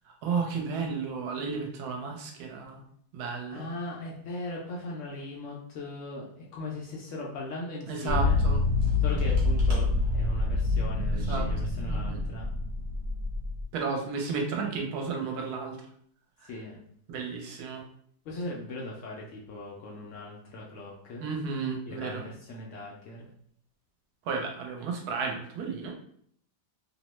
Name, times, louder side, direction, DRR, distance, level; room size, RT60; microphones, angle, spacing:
voice 1, 0.0-2.8 3.1-3.7 7.9-8.6 11.1-11.5 11.9-12.2 13.7-15.8 16.4-16.5 17.1-17.8 21.2-22.2 24.2-25.9, right 5 dB, 70° right, 2 dB, 1.1 m, -33 dB
voice 2, 3.5-8.4 9.0-12.5 16.4-16.8 18.2-21.2 21.9-23.3, left 2 dB, 80° left, -2 dB, 0.6 m, -39 dB
sound 1, 8.1-13.6, left 3 dB, 45° right, 0.9 m, -26 dB
2.8 x 2.1 x 3.0 m, 0.65 s
omnidirectional pair, 1.8 m